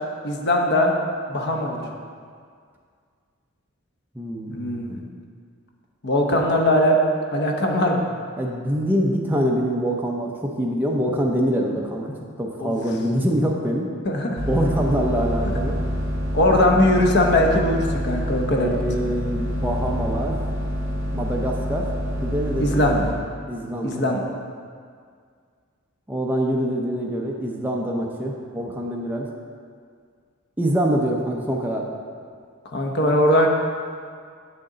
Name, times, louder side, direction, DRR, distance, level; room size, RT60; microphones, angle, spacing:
voice 1, 0.2-1.0 1.3-1.8 4.5-5.0 6.0-7.0 7.3-8.0 12.6-12.7 14.1-14.5 15.5-15.6 16.3-19.1 22.6-23.1 23.8-24.2 32.7-33.5, left 1 dB, 55° left, 1 dB, 0.8 m, -20 dB
voice 2, 4.1-4.8 8.4-13.9 14.5-15.8 18.6-20.4 21.1-21.9 22.2-22.8 23.5-24.0 26.1-29.3 30.6-31.9, equal, 10° right, -1 dB, 0.5 m, -25 dB
sound 1, 14.4-23.1, equal, 70° right, 1.7 m, -27 dB
7.5 x 6.4 x 3.8 m, 2.1 s
head